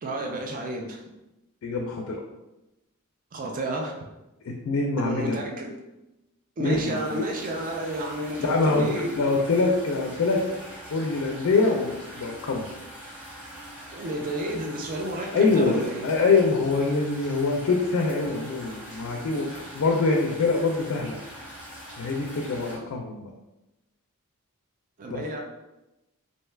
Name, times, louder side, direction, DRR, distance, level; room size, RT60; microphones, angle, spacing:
voice 1, 0.0-1.0 3.3-3.9 5.0-5.7 6.6-9.2 13.9-16.1 25.0-25.4, right 1 dB, 40° right, 1 dB, 0.4 m, -31 dB
voice 2, 1.6-2.2 4.5-5.4 6.6-7.2 8.4-10.4 10.9-12.7 15.3-21.2 22.0-23.3 25.1-25.4, left 3 dB, 65° left, 1 dB, 0.4 m, -24 dB
sound 1, 6.7-22.8, equal, 5° right, 1.0 m, -43 dB
2.6 x 2.3 x 3.2 m, 0.98 s
head